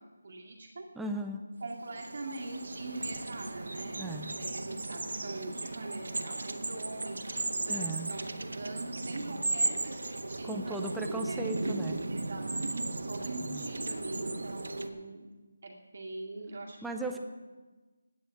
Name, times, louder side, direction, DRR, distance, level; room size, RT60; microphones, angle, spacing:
voice 1, 0.2-0.9 1.6-4.0 4.3-11.5 12.1-15.3 15.6-16.8, right 2 dB, 40° right, -1 dB, 2.3 m, -43 dB
voice 2, 1.0-1.4 4.0-4.4 7.7-8.1 10.4-12.0 13.5-13.6 16.8-17.2, right 2 dB, ahead, 4 dB, 0.4 m, -37 dB
sound 1, 1.7-14.9, right 2 dB, 75° right, 1.3 m, -36 dB
10.5 x 9.3 x 8.7 m, 1.3 s
figure-of-eight pair, 180°, 0 cm